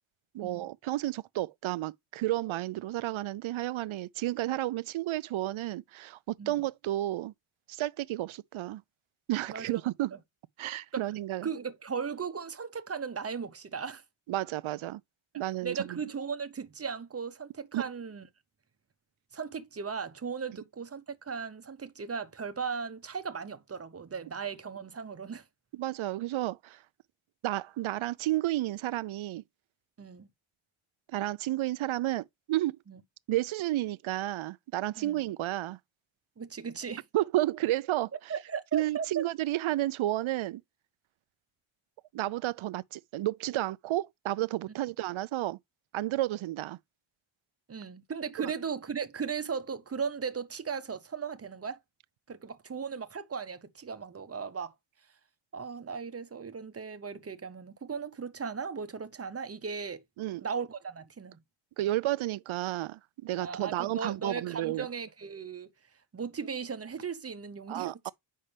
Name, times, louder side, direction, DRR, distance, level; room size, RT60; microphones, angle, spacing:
voice 1, 0.3-7.3 7.7-8.8 9.3-10.2 10.6-11.5 14.3-15.0 15.4-15.8 17.7-17.8 25.7-26.8 27.4-29.4 31.1-32.8 33.3-35.8 37.1-38.1 38.7-40.6 42.1-45.6 45.9-46.8 48.4-48.5 60.2-60.4 61.8-64.9 67.7-68.1, right 15 dB, 70° right, 0.5 m, -31 dB
voice 2, 9.5-9.8 10.1-10.2 10.9-11.0 11.4-14.0 15.3-18.3 19.3-25.4 30.0-30.3 32.9-33.0 35.0-35.2 36.4-37.0 38.3-39.2 47.7-51.8 52.3-54.7 55.5-60.0 60.4-61.4 63.4-65.7 66.1-68.1, right 6 dB, 30° right, 0.8 m, -37 dB
8.6 x 5.5 x 3.3 m
wide cardioid pair, 140°, 50 cm